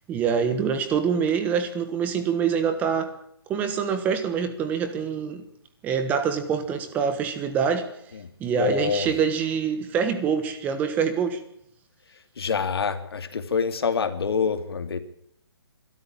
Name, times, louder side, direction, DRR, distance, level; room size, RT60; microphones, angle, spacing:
voice 1, 0.1-3.1 3.5-5.4 5.8-7.9 8.4-11.4, right 6 dB, 10° right, 10 dB, 1.2 m, -25 dB
voice 2, 8.5-9.1 12.4-15.0, left 6 dB, 65° left, 9 dB, 2.7 m, -26 dB
23.5 x 13.0 x 8.5 m, 0.70 s
hypercardioid pair, 165°, 14 cm